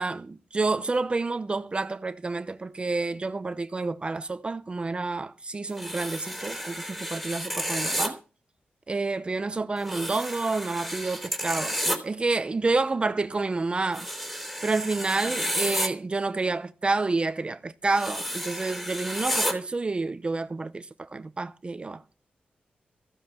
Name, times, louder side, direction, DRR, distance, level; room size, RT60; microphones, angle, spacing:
voice 1, 0.0-8.2 8.9-14.1 14.6-22.0, right 3 dB, 30° right, 0.7 m, -29 dB
sound 1, 5.8-8.1 9.8-12.0 13.9-15.9 17.9-19.5, equal, 5° left, 3.7 m, -31 dB
15.0 x 7.8 x 6.9 m
wide cardioid pair, 95°, 3 cm